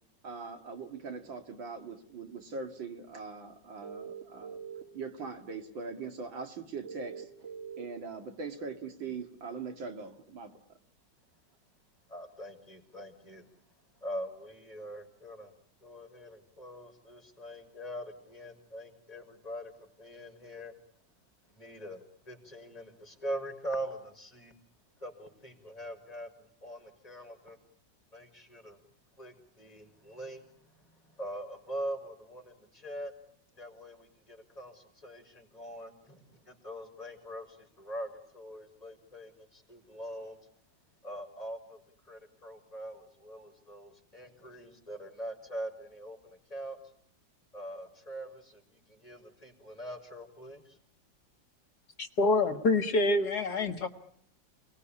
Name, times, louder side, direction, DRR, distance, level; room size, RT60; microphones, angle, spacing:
voice 1, 0.2-4.6 4.9-7.3 7.8-10.6, right 4 dB, 80° right, 6 dB, 3.0 m, -41 dB
sound 1, 3.8-4.8 6.8-7.8, right 7 dB, 35° right, 2.3 m, -43 dB
voice 2, 12.1-13.5 14.0-15.5 15.8-19.7 20.0-20.7 21.6-22.0 22.3-24.5 25.0-27.6 28.1-28.8 29.2-33.1 33.6-40.4 41.0-41.8 42.1-46.8 47.5-48.6 48.9-50.8, right 1 dB, 20° left, 5 dB, 4.7 m, -43 dB
voice 3, 52.0-53.9, left 2 dB, 55° left, 8 dB, 2.0 m, -26 dB
29.5 x 19.5 x 10.0 m, 0.68 s
omnidirectional pair, 2.0 m